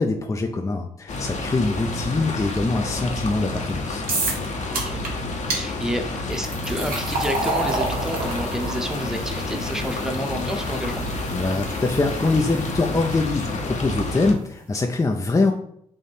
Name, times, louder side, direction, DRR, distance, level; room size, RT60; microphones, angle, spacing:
voice 1, 0.0-4.0 11.3-15.5, left 3 dB, 20° left, 3 dB, 0.5 m, -23 dB
sound 1, 1.1-14.3, left 2 dB, 50° left, 0.9 m, -29 dB
sound 2, 4.1-4.5 4.7-5.1 5.5-5.6 6.3-13.4, right 2 dB, 65° right, 1.3 m, -30 dB
voice 2, 4.7-5.0 5.5-11.1, equal, 5° right, 3 dB, 0.9 m, -30 dB
3.5 x 2.6 x 4.2 m, 0.68 s
hypercardioid pair, 45°, 16 cm